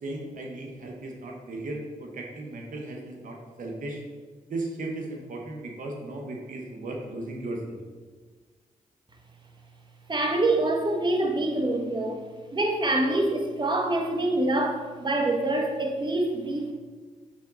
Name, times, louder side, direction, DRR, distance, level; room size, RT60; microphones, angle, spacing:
voice 1, 0.0-4.0 4.5-7.8, right 2 dB, 70° right, 1 dB, 1.1 m, -36 dB
voice 2, 10.1-12.2 12.5-16.7, right 2 dB, 35° right, 2 dB, 1.1 m, -25 dB
6.9 x 5.1 x 3.9 m, 1.4 s
cardioid pair, 55°, 14 cm